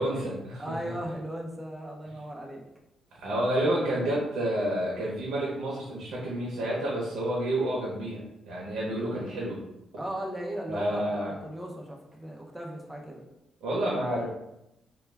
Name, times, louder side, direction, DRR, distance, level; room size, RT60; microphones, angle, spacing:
voice 1, 0.0-0.7 3.2-9.6 10.7-11.3 13.6-14.2, right 1 dB, 85° right, -4 dB, 0.6 m, -29 dB
voice 2, 0.6-2.6 10.0-13.2, right 1 dB, 10° right, -1 dB, 0.4 m, -37 dB
2.2 x 2.2 x 3.2 m, 0.88 s
cardioid pair, 135°, 0 cm